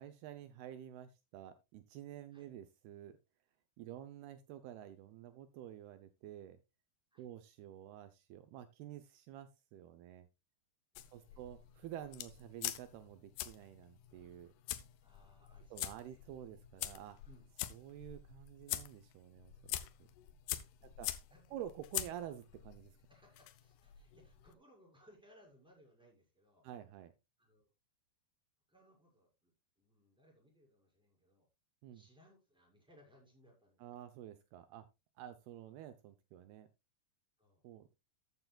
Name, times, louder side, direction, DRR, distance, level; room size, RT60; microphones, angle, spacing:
voice 1, 0.0-3.2 3.8-6.6 7.2-10.3 11.1-14.5 15.7-17.2 17.7-19.8 21.0-21.1 21.5-22.9 26.6-27.1 31.8-32.0 33.8-34.9 35.2-36.7 37.6-38.0, right 11 dB, 90° right, 10 dB, 2.2 m, -50 dB
voice 2, 10.9-11.7 15.0-16.2 17.2-17.5 20.8-21.0 21.3-21.6 23.1-26.7 27.4-27.7 28.7-31.5 31.9-34.0 35.2-35.4 37.4-37.7, left 1 dB, ahead, -1 dB, 5.2 m, -66 dB
sound 1, 11.0-24.5, left 14 dB, 80° left, 2.3 m, -45 dB
13.5 x 9.5 x 2.3 m, 0.24 s
omnidirectional pair, 5.7 m